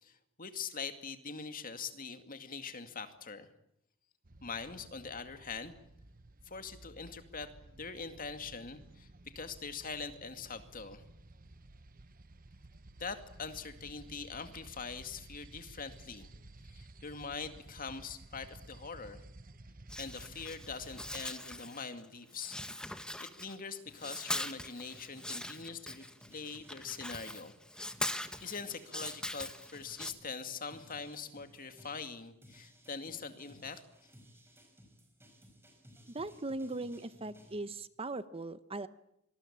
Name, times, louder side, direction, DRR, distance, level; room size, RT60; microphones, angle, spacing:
voice 1, 0.0-3.5 4.4-5.7 6.4-11.0 13.0-16.3 16.6-19.2 20.0-22.6 23.2-27.5 28.4-33.8, left 5 dB, 45° left, 8 dB, 2.3 m, -43 dB
sound 1, 4.2-21.3, right 2 dB, 45° right, 1.1 m, -55 dB
sound 2, 19.9-22.1 22.3-23.7 24.0-30.1, left 1 dB, 5° left, 1.5 m, -41 dB
sound 3, 23.8-30.3 30.7-37.6, equal, 10° right, 5.7 m, -60 dB
voice 2, 36.1-38.9, right 2 dB, 30° right, 13 dB, 0.9 m, -39 dB
25.5 x 20.0 x 8.7 m, 0.78 s
head